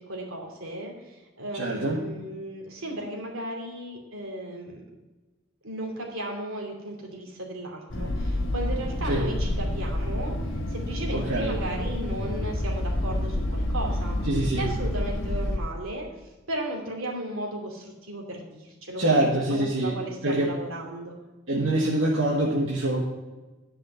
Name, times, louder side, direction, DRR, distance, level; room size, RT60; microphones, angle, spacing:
voice 1, 0.0-4.8 5.6-14.2 14.6-16.1 16.5-19.2 19.5-21.2, right 1 dB, 85° right, 0 dB, 2.6 m, -35 dB
voice 2, 1.5-2.0 9.0-9.3 11.1-11.6 14.2-14.7 19.0-20.5 21.5-23.0, right 1 dB, 70° right, -3 dB, 1.4 m, -25 dB
sound 1, 7.9-15.6, left 1 dB, 65° left, 1.1 m, -29 dB
10.5 x 5.7 x 6.1 m, 1.2 s
head